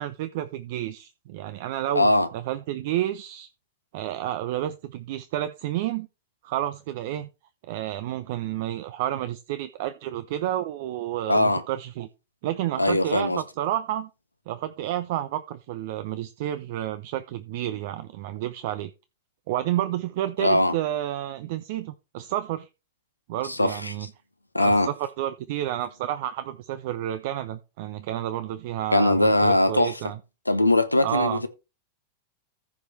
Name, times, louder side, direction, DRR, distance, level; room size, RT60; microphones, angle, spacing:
voice 1, 0.0-3.5 3.9-6.1 6.4-7.3 7.6-12.1 12.4-14.1 14.5-18.9 19.5-22.7 23.3-24.1 24.6-30.2 31.0-31.4, right 13 dB, 50° right, 0.6 m, -30 dB
voice 2, 1.9-2.3 11.3-11.6 12.8-13.4 20.4-20.8 23.5-24.1 24.5-24.9 28.9-30.0 30.5-31.5, left 1 dB, 85° left, 1.0 m, -21 dB
14.5 x 5.0 x 4.3 m
figure-of-eight pair, 90°, 0 cm